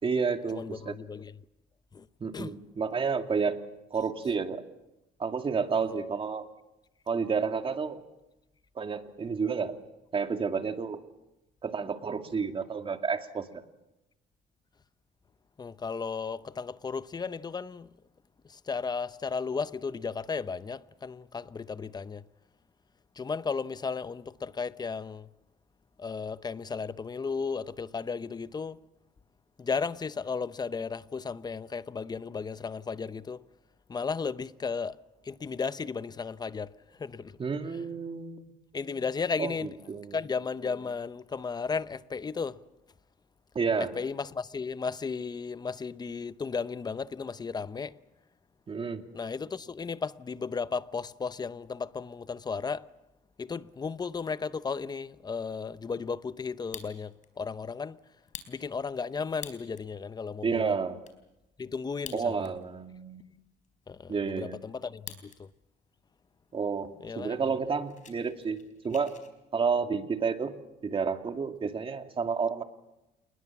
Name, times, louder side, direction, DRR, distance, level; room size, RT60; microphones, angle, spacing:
voice 1, 0.0-1.0 2.2-3.6 3.9-4.6 5.2-6.4 7.1-8.0 8.8-9.8 10.1-11.0 11.6-13.6 37.4-38.5 39.4-40.2 43.5-43.9 48.7-49.1 60.4-61.0 62.1-63.3 64.1-64.6 66.5-66.9 67.2-69.1 69.5-70.6 70.8-72.6, right 5 dB, 30° right, 2.3 m, -30 dB
voice 2, 0.5-1.4 1.9-2.0 2.3-2.5 5.8-5.9 15.6-17.9 18.7-22.2 23.2-25.3 26.0-28.8 29.6-33.4 33.9-35.0 35.3-36.7 37.0-37.3 38.7-39.7 40.1-42.6 43.8-47.9 49.1-52.9 53.4-58.0 58.5-60.7 61.6-62.5 63.9-65.5 67.0-67.4, left 5 dB, 25° left, 0.8 m, -34 dB
Fire, 56.5-57.3 57.7-57.8 58.2-59.9 60.4-60.5 60.7-61.2 61.9-62.7 63.0-63.1 63.6-65.4 65.7-66.2 66.7-66.8 67.1-67.3 67.6-69.3, left 8 dB, 45° left, 4.3 m, -47 dB
28.5 x 20.5 x 7.3 m
cardioid pair, 110°, 17 cm